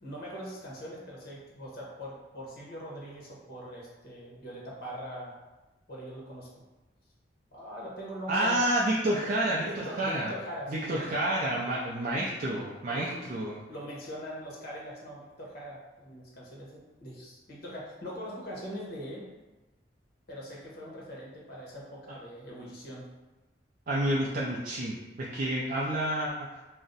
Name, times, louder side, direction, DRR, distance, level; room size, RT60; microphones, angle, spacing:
voice 1, 0.0-5.3 5.9-6.5 7.5-8.6 9.6-11.0 12.9-13.3 13.7-19.3 20.3-23.1, equal, 55° left, -4 dB, 0.9 m, -42 dB
voice 2, 8.3-10.3 10.7-13.6 23.9-26.6, right 1 dB, 45° right, -5 dB, 0.3 m, -29 dB
2.5 x 2.1 x 3.8 m, 1.1 s
head